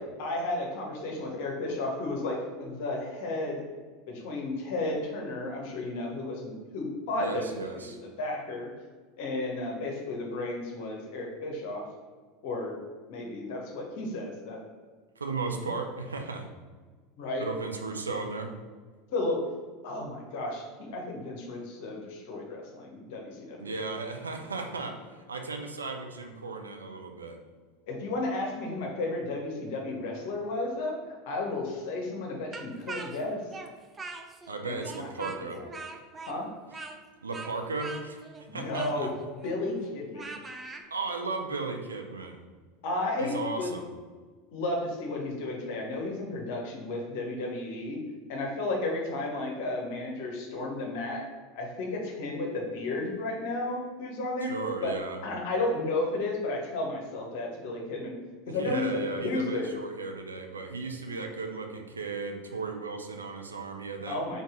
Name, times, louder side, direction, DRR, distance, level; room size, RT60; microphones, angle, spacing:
voice 1, 0.2-3.6 4.1-7.9 8.2-8.7 9.2-11.8 12.4-12.8 13.1-14.6 17.2-17.4 19.1-19.4 19.8-23.7 27.9-33.4 34.6-35.8 36.3-36.5 38.5-39.1 39.4-40.3 42.8-43.7 44.5-48.0 48.3-51.2 51.6-54.5 54.8-54.9 55.2-58.2 58.5-59.7 64.1-64.4, left 2 dB, 55° left, 0 dB, 0.8 m, -33 dB
voice 2, 7.2-8.0 15.2-16.5 17.4-18.5 23.6-27.4 34.5-35.6 37.2-38.3 38.5-39.1 40.9-42.4 43.2-43.9 54.4-55.2 58.5-64.4, right 4 dB, 80° right, 4 dB, 0.5 m, -35 dB
Speech, 32.5-34.5 34.8-40.8, right 3 dB, 20° right, 0.5 m, -42 dB
4.1 x 3.5 x 3.6 m, 1.5 s
figure-of-eight pair, 80°, 0 cm